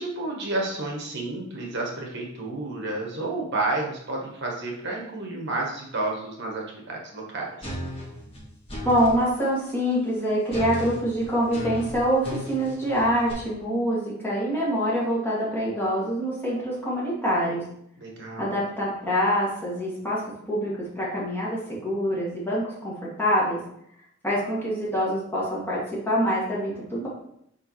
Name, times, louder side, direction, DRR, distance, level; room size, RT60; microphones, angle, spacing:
voice 1, 0.0-7.8 18.0-18.5, right 2 dB, 55° right, -1 dB, 1.2 m, -31 dB
sound 1, 7.6-9.2 10.5-13.3, equal, 25° left, 1.9 m, -35 dB
voice 2, 8.8-17.6 18.4-23.6 24.2-27.1, equal, 10° left, -7 dB, 2.1 m, -25 dB
6.5 x 4.7 x 3.1 m, 0.73 s
head